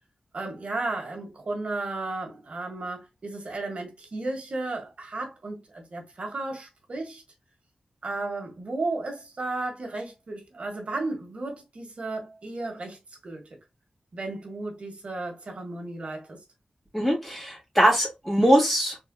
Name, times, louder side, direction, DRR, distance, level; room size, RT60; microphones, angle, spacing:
voice 1, 0.3-7.2 8.0-13.4 14.1-16.4, right 2 dB, 55° right, 1.8 m, -34 dB
voice 2, 16.9-19.0, right 1 dB, 5° left, 2.7 m, -22 dB
4.5 x 4.0 x 2.3 m
wide cardioid pair, 110°, 2 cm